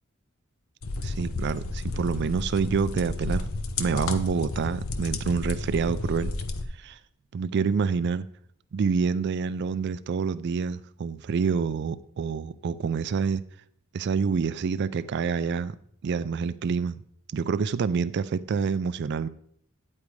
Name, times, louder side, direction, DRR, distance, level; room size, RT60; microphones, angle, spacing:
sound 1, 0.8-6.6, left 3 dB, 85° left, 0.7 m, -32 dB
voice 1, 1.0-3.5 3.8-6.3 6.8-7.0 7.3-8.3 8.7-13.4 13.9-15.7 16.0-17.0 17.3-19.3, right 5 dB, 55° right, 0.3 m, -27 dB
9.3 x 8.5 x 3.2 m
head